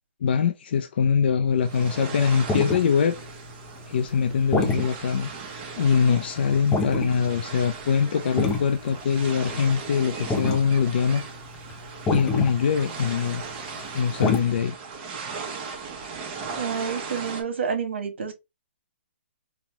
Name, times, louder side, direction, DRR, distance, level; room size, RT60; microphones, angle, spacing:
voice 1, 0.2-3.2 3.9-5.3 5.8-11.2 12.1-13.4 13.9-14.8, left 6 dB, 60° left, 0.5 m, -23 dB
sound 1, 1.6-17.4, right 5 dB, 30° right, 0.9 m, -38 dB
sound 2, 1.7-5.9 6.1-6.3 6.6-7.3 7.6-7.9 8.3-13.5 13.8-14.4, left 3 dB, 15° left, 0.6 m, -28 dB
voice 2, 16.6-18.3, right 6 dB, 70° right, 1.2 m, -29 dB
4.2 x 2.2 x 2.9 m
hypercardioid pair, 155°, 6 cm